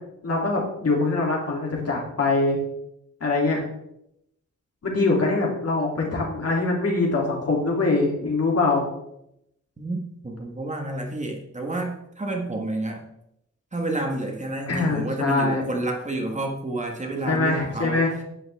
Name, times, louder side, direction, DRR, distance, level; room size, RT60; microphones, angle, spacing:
voice 1, 0.2-2.6 3.2-3.6 4.8-8.9 14.7-15.6 17.3-18.1, left 3 dB, 55° left, -2 dB, 2.8 m, -23 dB
voice 2, 9.8-13.0 13.7-18.0, right 2 dB, 25° right, 1 dB, 1.4 m, -29 dB
11.0 x 9.2 x 3.4 m, 0.81 s
wide cardioid pair, 175°, 30 cm